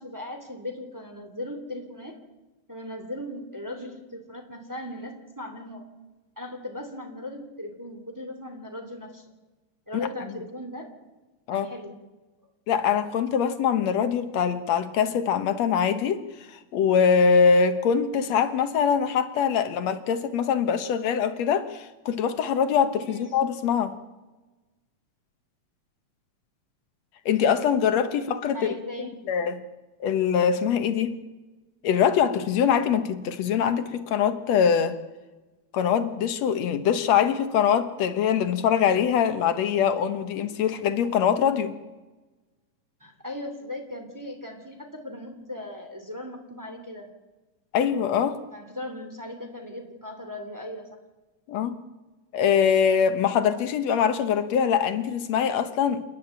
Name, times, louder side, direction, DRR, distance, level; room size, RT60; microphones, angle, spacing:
voice 1, 0.0-2.2 2.7-5.8 6.4-9.2 9.9-10.9 11.5-12.0 23.0-23.3 28.4-29.2 43.0-47.1 48.5-50.9, left 1 dB, 5° right, 3 dB, 2.4 m, -38 dB
voice 2, 12.7-23.9 27.3-28.7 29.0-29.6 30.0-31.2 31.8-35.0 35.7-41.7 47.7-48.4 51.5-51.8 52.3-56.0, left 7 dB, 70° left, 10 dB, 2.3 m, -23 dB
28.5 x 11.0 x 9.0 m, 1.2 s
omnidirectional pair, 3.4 m